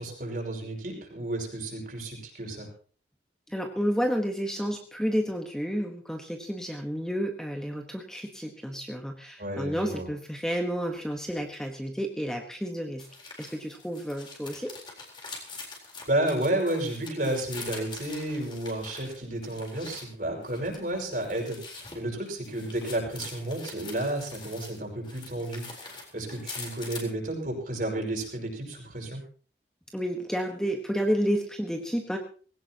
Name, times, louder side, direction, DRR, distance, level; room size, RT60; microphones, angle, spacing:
voice 1, 0.0-2.7 9.4-10.1 16.1-29.2, right 1 dB, 50° right, 1 dB, 5.6 m, -32 dB
voice 2, 3.5-13.1 13.4-14.7 29.9-32.2, equal, 5° left, 3 dB, 1.2 m, -30 dB
sound 1, 13.0-20.1 20.4-24.8 25.0-27.1, left 4 dB, 25° left, 4.0 m, -44 dB
20.0 x 17.0 x 2.9 m, 0.41 s
head